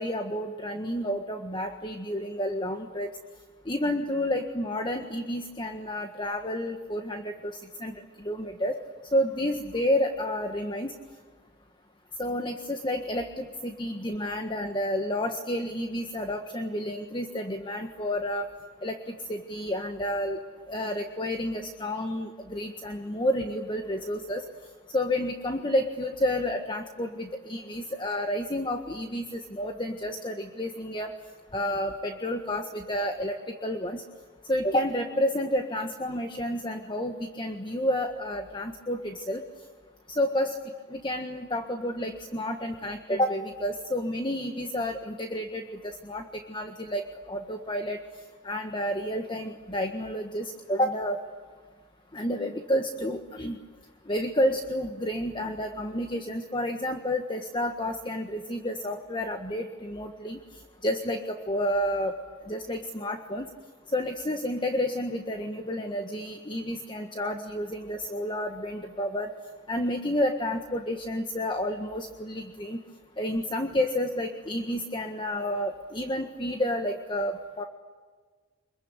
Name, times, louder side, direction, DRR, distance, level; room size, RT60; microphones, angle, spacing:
voice 1, 0.0-3.1 3.6-8.8 9.1-10.9 12.2-18.5 18.8-20.4 20.7-24.4 24.9-31.1 31.5-33.4 33.6-34.0 34.5-39.4 40.1-40.6 40.9-48.0 48.4-51.2 52.1-53.6 54.1-60.4 60.8-62.2 62.5-63.5 63.9-69.3 69.7-72.8 73.2-77.6, left 1 dB, 25° left, 5 dB, 1.6 m, -30 dB
26.5 x 22.5 x 9.8 m, 1.5 s
head